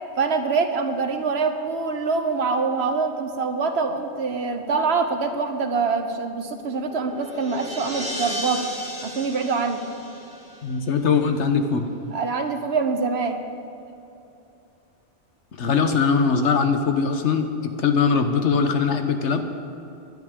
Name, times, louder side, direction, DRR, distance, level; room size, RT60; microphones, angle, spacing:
voice 1, 0.2-8.6 9.0-9.8 12.1-13.4, right 4 dB, 65° right, 6 dB, 1.3 m, -24 dB
sound 1, 6.6-11.1, equal, 5° right, 3.1 m, -35 dB
voice 2, 10.6-11.9 15.6-19.5, left 5 dB, 75° left, 6 dB, 1.3 m, -21 dB
20.5 x 11.0 x 3.7 m, 2.7 s
omnidirectional pair, 1.2 m